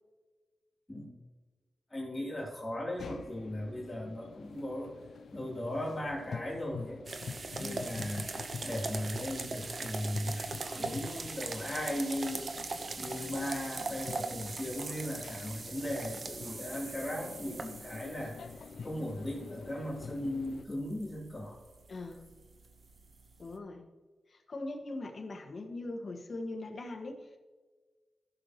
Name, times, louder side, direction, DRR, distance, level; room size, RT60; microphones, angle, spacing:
voice 1, 1.9-4.9 5.3-7.0 7.5-8.2 8.6-10.4 10.7-12.5 13.0-18.4 18.8-21.6, left 1 dB, 20° left, -3 dB, 3.0 m, -37 dB
sound 1, 3.0-20.6, left 5 dB, 80° left, 0.4 m, -47 dB
sound 2, 7.1-23.5, right 3 dB, 55° right, 0.9 m, -41 dB
voice 2, 7.6-7.9 21.9-22.2 23.4-23.9 24.3-27.4, left 2 dB, 55° left, 3 dB, 1.6 m, -41 dB
15.0 x 6.7 x 3.0 m, 1.4 s
cardioid pair, 75°, 0 cm